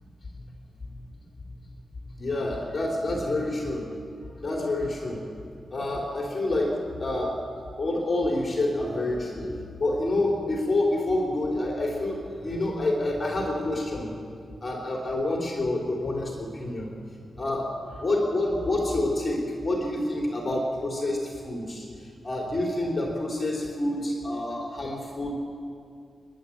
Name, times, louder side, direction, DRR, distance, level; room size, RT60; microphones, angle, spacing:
voice 1, 2.2-3.9 4.4-5.2 5.7-7.4 7.8-9.5 9.8-14.1 14.6-16.9 17.4-21.9 22.2-25.4, left 1 dB, 30° left, -1 dB, 3.2 m, -28 dB
29.0 x 11.0 x 8.5 m, 2.4 s
wide cardioid pair, 125°, 0 cm